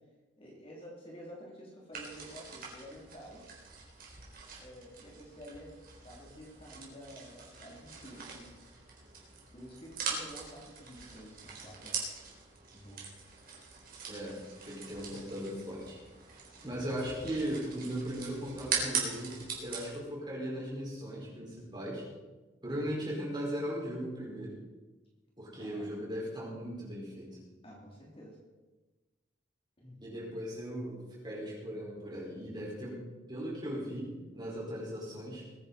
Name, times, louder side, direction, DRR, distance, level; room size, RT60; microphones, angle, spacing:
voice 1, 0.4-3.4 4.6-5.7 6.0-8.5 9.5-12.1 12.7-13.1 16.7-16.8 25.5-25.9 27.6-28.4 29.8-30.0, equal, 30° left, -3 dB, 3.1 m, -50 dB
sound 1, 1.9-20.0, right 5 dB, 50° right, 3.8 m, -42 dB
voice 2, 14.1-14.4 14.6-16.0 16.6-22.0 22.6-24.6 25.4-27.4 30.0-33.0 33.3-35.5, equal, 25° right, -5 dB, 5.2 m, -38 dB
21.0 x 10.0 x 4.3 m, 1.2 s
head